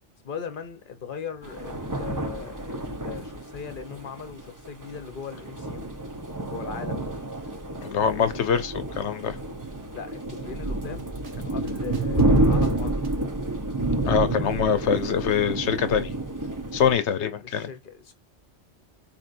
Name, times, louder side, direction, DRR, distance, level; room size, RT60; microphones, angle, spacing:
voice 1, 0.2-5.9 6.4-7.5 8.1-8.4 9.9-11.1 11.3-13.1 16.8-18.1, left 6 dB, 50° left, 1.0 m, -39 dB
sound 1, 1.4-17.0, right 2 dB, 20° right, 0.6 m, -29 dB
voice 2, 7.8-9.4 14.1-16.1 16.7-17.7, left 7 dB, 75° left, 1.0 m, -24 dB
Drum kit, 10.9-13.3, equal, 50° right, 0.9 m, -44 dB
4.4 x 3.0 x 2.5 m
omnidirectional pair, 1.2 m